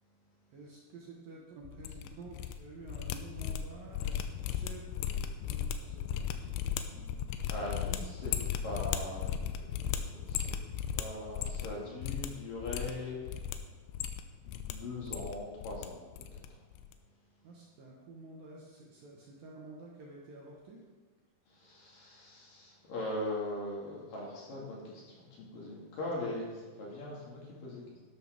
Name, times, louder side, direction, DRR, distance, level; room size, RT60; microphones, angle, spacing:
voice 1, 0.5-7.3 17.4-20.8, right 3 dB, 60° right, -3 dB, 2.6 m, -50 dB
sound 1, 1.7-2.5 2.8-11.7 12.0-12.3 12.6-13.6 13.9-14.7 15.0-15.9 16.1-16.5 16.7-16.9, left 9 dB, 85° left, 3.0 m, -36 dB
voice 2, 7.5-8.3 8.6-10.5 10.9-13.2 14.4-16.0 21.6-27.8, left 1 dB, 55° left, -4 dB, 3.4 m, -40 dB
12.0 x 12.0 x 3.6 m, 1.3 s
omnidirectional pair, 5.4 m